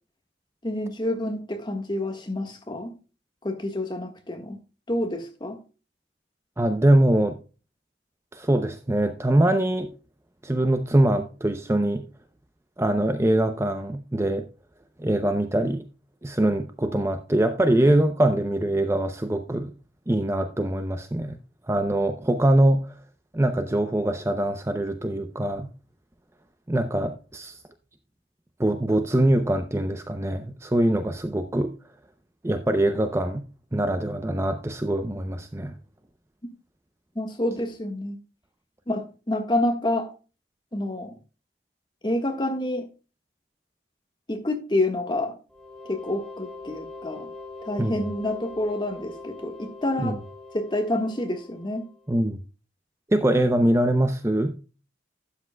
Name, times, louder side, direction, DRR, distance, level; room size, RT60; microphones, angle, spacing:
voice 1, 0.6-2.9 3.4-4.6 4.9-5.6 37.1-38.2 38.9-40.1 40.7-41.2 42.0-42.9 44.3-45.4 45.9-47.3 47.6-50.2 50.5-51.8, left 1 dB, 25° left, 1.5 m, -28 dB
voice 2, 6.6-7.4 8.3-9.9 10.4-12.0 12.8-14.4 15.0-15.8 16.2-19.7 20.1-21.4 21.7-22.9 23.3-25.7 26.7-27.6 28.6-31.7 32.4-33.4 33.7-35.7 47.8-48.0 50.0-50.2 52.1-52.4 53.1-54.5, right 1 dB, 15° right, 0.5 m, -23 dB
sound 1, 45.5-52.1, left 3 dB, 5° left, 2.7 m, -42 dB
12.0 x 8.4 x 2.2 m
head